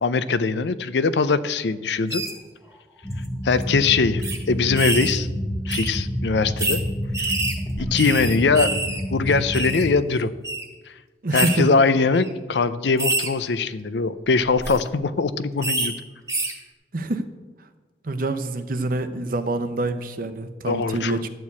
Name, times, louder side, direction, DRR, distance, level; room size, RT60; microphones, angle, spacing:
voice 1, 0.0-2.2 3.4-5.3 5.7-6.8 7.2-7.3 7.8-8.8 9.1-10.3 11.3-15.9 20.6-21.2, left 4 dB, 75° left, 14 dB, 0.5 m, -22 dB
sound 1, 2.1-2.3 3.1-3.3 3.5-3.6 4.2-4.4 4.8-5.2 5.7-5.9 6.6-6.8 7.1-9.0 9.3-9.9 10.4-10.6 11.3-11.6 12.1-12.3 13.0-13.3 14.5-14.8 15.6-15.9 16.3-16.5, right 2 dB, 15° right, 1.5 m, -26 dB
sound 2, 3.0-9.9, equal, 15° left, 0.7 m, -29 dB
voice 2, 11.2-11.7 16.9-17.2 18.0-21.3, right 2 dB, 50° right, 10 dB, 0.8 m, -26 dB
12.0 x 4.6 x 8.3 m, 1.3 s
head